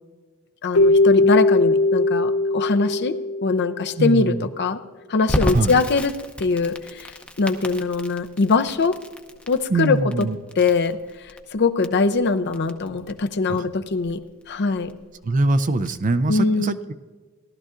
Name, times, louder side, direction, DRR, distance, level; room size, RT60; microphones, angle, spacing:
voice 1, 0.6-3.2 3.4-4.8 5.1-6.1 6.4-9.0 9.5-10.3 10.6-14.2 14.5-14.9 16.3-16.7, left 4 dB, 50° left, 9 dB, 0.6 m, -22 dB
Keyboard (musical), 0.7-4.0, left 2 dB, 90° left, 1.2 m, -19 dB
voice 2, 4.0-4.4 5.5-5.8 9.7-10.4 13.5-13.7 15.2-16.9, right 2 dB, 35° right, 11 dB, 0.5 m, -22 dB
Crackle, 5.3-16.0, equal, 5° left, 0.7 m, -33 dB
18.0 x 12.5 x 2.5 m, 1.4 s
head